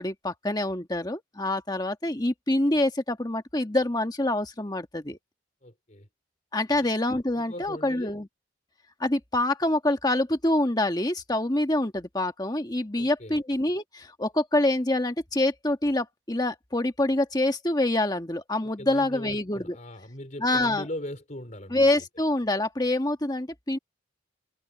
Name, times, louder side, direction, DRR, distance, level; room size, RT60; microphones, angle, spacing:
voice 1, 0.0-5.2 6.5-8.3 9.0-19.7 20.4-20.9 21.7-23.8, left 1 dB, 20° left, 1.4 m, -26 dB
voice 2, 5.6-6.1 7.4-8.2 13.0-13.4 18.6-22.0, left 1 dB, 40° left, 3.9 m, -40 dB
head